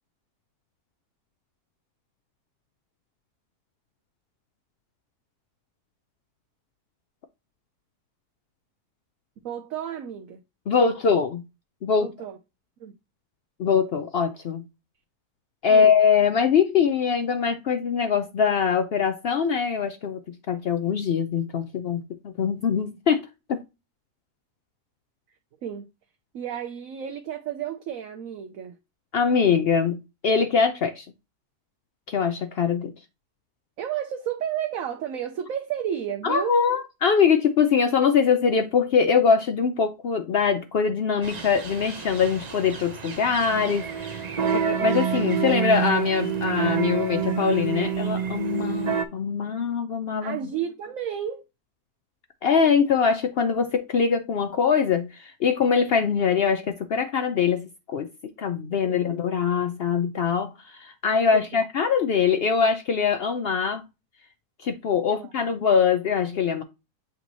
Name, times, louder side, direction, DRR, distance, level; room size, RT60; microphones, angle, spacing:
voice 1, 9.4-10.4 12.0-12.4 12.8-12.9 15.7-15.9 25.6-25.9 26.3-28.8 33.8-36.6 50.2-51.4 58.7-59.0 61.3-61.6 65.1-65.3, right 9 dB, 65° right, 1.0 m, -32 dB
voice 2, 10.7-11.4 11.8-12.1 13.6-14.6 15.6-20.2 20.5-22.0 22.4-23.6 29.1-31.1 32.1-32.9 36.2-44.2 44.5-50.4 52.4-58.1 58.4-63.8 64.6-66.6, left 6 dB, 90° left, 0.5 m, -23 dB
sound 1, 41.2-49.1, right 7 dB, 50° right, 0.5 m, -28 dB
8.0 x 3.0 x 3.9 m
omnidirectional pair, 1.7 m